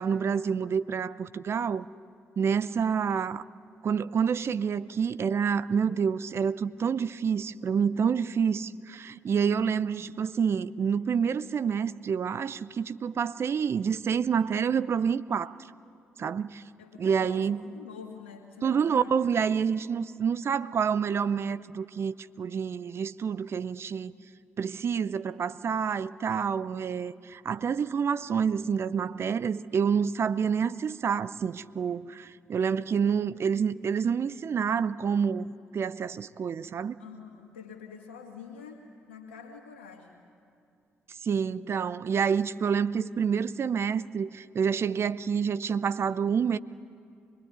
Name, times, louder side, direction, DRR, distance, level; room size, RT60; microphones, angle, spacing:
voice 1, 0.0-1.9 2.4-3.4 3.8-15.6 16.2-16.6 17.0-17.6 18.6-24.1 24.6-37.0 41.2-46.6, right 6 dB, 40° right, 0.6 m, -28 dB
voice 2, 16.8-19.1 37.0-40.2, left 6 dB, 80° left, 2.2 m, -46 dB
24.5 x 21.0 x 9.7 m
figure-of-eight pair, 40°, 6 cm